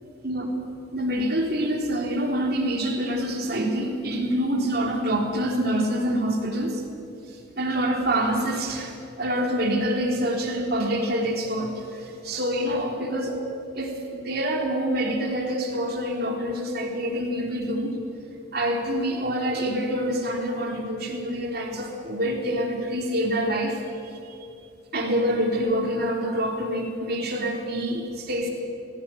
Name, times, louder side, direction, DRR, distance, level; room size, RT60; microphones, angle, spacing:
voice 1, 0.9-6.8 7.3-13.4 13.7-18.0 18.5-24.4 24.9-28.5, equal, 50° right, 1 dB, 3.5 m, -26 dB
20.5 x 17.0 x 9.1 m, 2.6 s
head